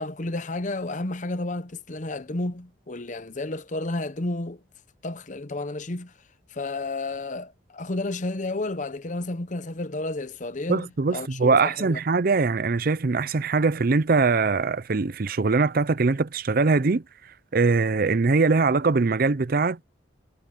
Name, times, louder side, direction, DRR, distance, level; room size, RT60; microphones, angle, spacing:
voice 1, 0.0-4.6 5.0-6.1 6.5-12.0, left 2 dB, 40° left, 0.8 m, -31 dB
voice 2, 10.7-17.0 17.5-19.8, right 4 dB, 50° right, 0.5 m, -22 dB
head